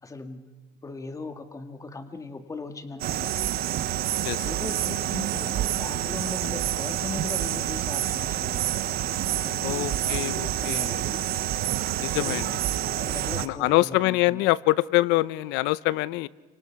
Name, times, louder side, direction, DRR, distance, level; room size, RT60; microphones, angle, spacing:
voice 1, 0.0-0.6 0.8-3.4 4.3-8.8 9.4-11.2 12.1-12.5 12.9-14.5, left 3 dB, 15° left, 7 dB, 1.9 m, -39 dB
sound 1, 3.0-13.5, right 12 dB, 55° right, 1.1 m, -28 dB
voice 2, 9.6-11.0 12.0-12.5 13.4-16.3, left 19 dB, 70° left, 19 dB, 0.7 m, -25 dB
29.0 x 25.5 x 5.9 m, 1.2 s
cardioid pair, 120°, 19 cm